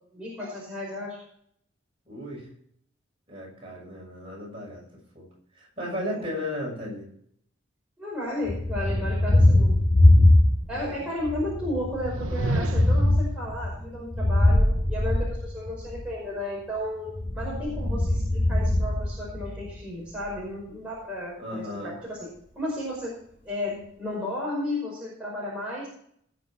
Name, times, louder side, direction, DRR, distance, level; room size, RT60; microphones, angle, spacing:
voice 1, 0.1-1.2 6.1-6.2 8.0-9.9 10.7-22.3 22.5-23.1 23.4-25.9, left 1 dB, 5° right, -6 dB, 5.2 m, -33 dB
voice 2, 2.0-2.5 3.3-4.9 5.1-5.3 5.5-7.1 10.7-11.0 21.4-21.9, left 1 dB, 25° right, -3 dB, 6.6 m, -35 dB
Thunder, 8.5-10.9 11.2-16.0 17.1-19.7, left 1 dB, 30° left, 3.7 m, -22 dB
sound 1, 11.9-13.3, right 2 dB, 80° right, 0.9 m, -31 dB
19.0 x 7.2 x 4.4 m, 0.65 s
head